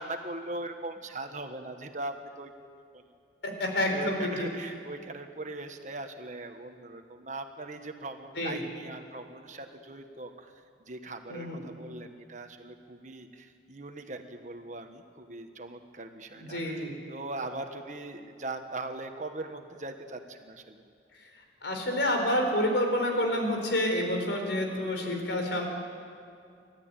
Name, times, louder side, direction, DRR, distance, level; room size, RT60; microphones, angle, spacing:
voice 1, 0.0-2.5 2.9-3.0 3.9-10.5 10.9-20.8, right 2 dB, 40° right, 6 dB, 1.4 m, -40 dB
voice 2, 3.4-4.5 8.4-8.6 11.3-11.7 16.3-17.0 21.2-21.3 21.6-25.7, left 1 dB, 75° left, 3 dB, 4.4 m, -29 dB
29.5 x 13.5 x 9.0 m, 2.4 s
head